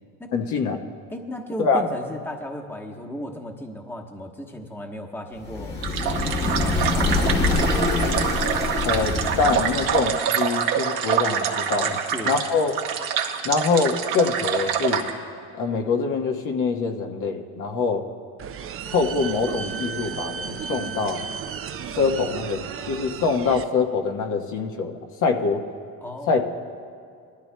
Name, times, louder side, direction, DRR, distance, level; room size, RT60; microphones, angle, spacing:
voice 1, 0.3-0.8 1.6-1.8 8.8-12.0 12.2-12.7 13.4-15.0 15.6-18.0 18.9-21.2 22.0-25.6 26.3-26.4, left 4 dB, 60° left, 2 dB, 1.3 m, -24 dB
voice 2, 1.1-5.8 6.5-7.7 9.4-9.6 11.8-12.4 26.0-26.4, left 1 dB, 5° left, 1 dB, 1.2 m, -35 dB
sound 1, 5.5-10.2, left 3 dB, 30° left, 1.4 m, -25 dB
sound 2, 5.8-15.1, right 8 dB, 70° right, 1.2 m, -26 dB
sound 3, 18.4-23.6, right 7 dB, 40° right, 0.6 m, -34 dB
20.5 x 13.5 x 2.3 m, 2.4 s
supercardioid pair, 75°, 35 cm